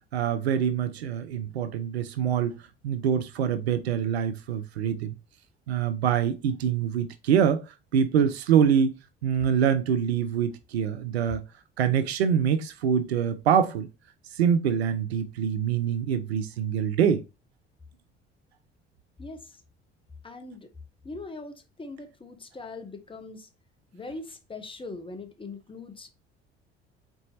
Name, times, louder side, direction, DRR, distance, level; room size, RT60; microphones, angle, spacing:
voice 1, 0.1-2.5 2.8-5.1 5.7-8.9 9.2-11.4 11.8-13.9 14.3-17.2, right 8 dB, 80° right, 0.5 m, -25 dB
voice 2, 19.2-19.5 20.2-20.7 21.0-23.5 23.9-26.1, left 3 dB, 15° left, 0.9 m, -41 dB
4.5 x 4.0 x 2.6 m
figure-of-eight pair, 55°, 31 cm